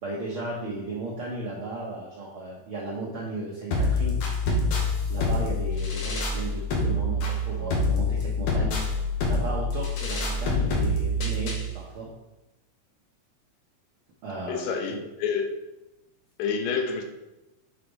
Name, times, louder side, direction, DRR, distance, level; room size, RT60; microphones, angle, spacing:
voice 1, 0.0-4.2 5.1-9.0 9.3-12.1 14.2-15.0, right 2 dB, 75° right, -4 dB, 1.2 m, -35 dB
sound 1, 3.7-11.7, left 2 dB, 60° left, 1.6 m, -26 dB
voice 2, 14.5-15.5 16.4-17.0, left 6 dB, 90° left, 4 dB, 2.5 m, -28 dB
6.5 x 3.9 x 5.3 m, 0.99 s
omnidirectional pair, 3.8 m